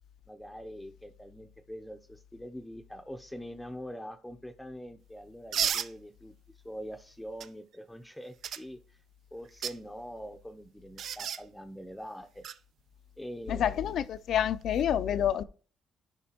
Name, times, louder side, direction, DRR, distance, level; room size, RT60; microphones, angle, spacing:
voice 1, 0.3-9.0 9.3-12.5 13.2-13.9 15.1-15.2, equal, 5° left, 0.6 m, -44 dB
sound 1, 5.5-5.9 7.4-7.5 8.4-8.6 9.4-9.8 11.0-11.4 12.4-12.6 14.6-14.8, right 8 dB, 65° right, 0.5 m, -32 dB
voice 2, 13.5-15.4, left 9 dB, 70° left, 0.4 m, -28 dB
11.0 x 5.3 x 2.9 m
cardioid pair, 90°, 0 cm